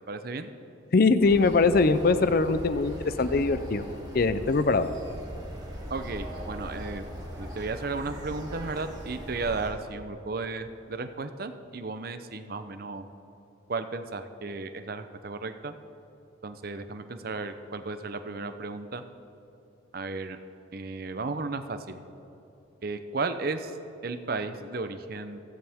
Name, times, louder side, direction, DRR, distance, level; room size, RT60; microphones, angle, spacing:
voice 1, 0.1-0.5 5.9-7.1 7.4-13.1 13.7-15.7 16.4-19.0 19.9-20.4 20.7-22.0 22.8-23.8 24.0-25.4, right 3 dB, 50° right, 9 dB, 0.7 m, -34 dB
voice 2, 0.9-3.8 4.1-4.9, left 3 dB, 50° left, 12 dB, 0.5 m, -22 dB
sound 1, 1.2-9.7, equal, 20° right, 2.7 m, -40 dB
16.0 x 14.0 x 3.6 m, 2.9 s
head